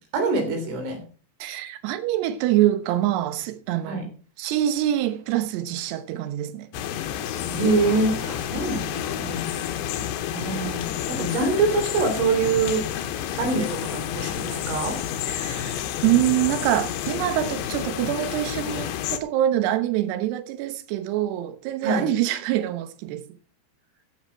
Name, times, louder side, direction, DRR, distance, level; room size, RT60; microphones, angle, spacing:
voice 1, 0.1-1.0 3.9-4.1 7.5-9.5 10.3-12.8 13.4-15.0 21.8-22.1, right 3 dB, 90° right, 5.8 m, -25 dB
voice 2, 1.4-4.0 4.4-6.7 15.3-23.2, right 13 dB, 75° right, 2.8 m, -25 dB
sound 1, 6.7-19.2, left 10 dB, 75° left, 2.6 m, -30 dB
14.0 x 8.1 x 4.6 m
omnidirectional pair, 5.4 m